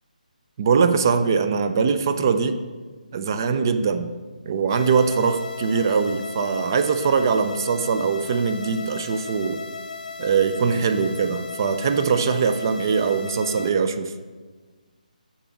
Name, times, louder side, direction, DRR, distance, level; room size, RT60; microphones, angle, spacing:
voice 1, 0.6-2.6 3.1-4.1 4.5-9.6 10.2-14.1, right 5 dB, 25° right, 9 dB, 0.4 m, -22 dB
sound 1, 4.7-13.7, left 4 dB, 60° left, 0.7 m, -36 dB
7.3 x 4.1 x 5.8 m, 1.4 s
hypercardioid pair, 170°, 5 cm